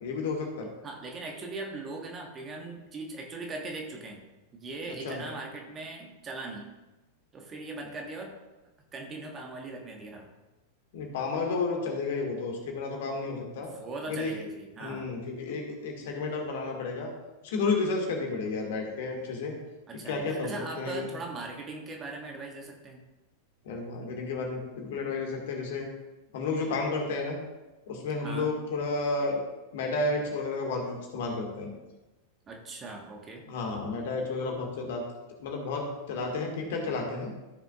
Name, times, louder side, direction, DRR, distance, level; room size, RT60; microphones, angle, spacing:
voice 1, 0.0-0.7 5.0-5.2 10.9-13.7 14.1-14.3 14.8-17.1 17.4-19.6 20.1-20.5 20.8-21.0 23.7-25.9 26.3-27.4 27.9-29.4 29.7-31.7 33.5-35.0 35.4-37.3, left 3 dB, 55° left, 1 dB, 1.9 m, -31 dB
voice 2, 0.8-4.2 4.5-6.7 7.3-8.4 8.9-10.3 13.6-15.2 19.9-23.0 28.2-28.6 32.5-33.5, right 3 dB, 25° right, 1 dB, 1.4 m, -40 dB
14.0 x 6.6 x 2.4 m, 1.1 s
figure-of-eight pair, 90°, 0 cm